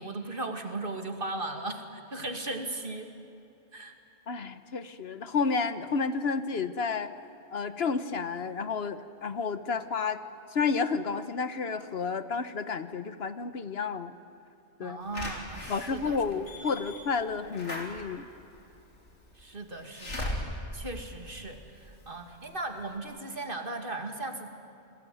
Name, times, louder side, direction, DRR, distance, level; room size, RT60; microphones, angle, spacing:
voice 1, 0.0-3.1 3.7-4.0 14.8-16.2 16.6-16.7 19.4-24.5, right 2 dB, 50° right, 5 dB, 2.5 m, -37 dB
voice 2, 4.3-7.1 7.5-10.2 10.5-14.1 14.8-15.0 15.7-18.3, left 5 dB, 65° left, 12 dB, 1.2 m, -31 dB
Slam / Alarm, 15.1-22.0 22.4-22.5 22.8-22.9, left 1 dB, 90° left, 3.9 m, -39 dB
29.5 x 21.0 x 9.3 m, 2.7 s
omnidirectional pair, 1.2 m